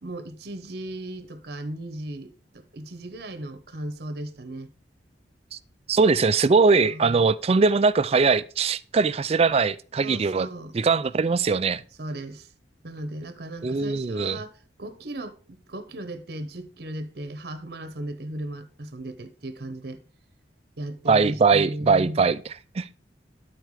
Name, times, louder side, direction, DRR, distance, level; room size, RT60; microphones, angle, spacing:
voice 1, 0.0-4.7 6.8-7.3 10.0-10.7 12.0-12.5 12.8-20.0 20.8-22.2, right 1 dB, 60° right, 1.0 m, -36 dB
voice 2, 5.9-10.5 10.7-11.8 13.6-14.4 21.1-22.9, right 4 dB, 35° right, 0.4 m, -21 dB
11.5 x 4.5 x 4.8 m
head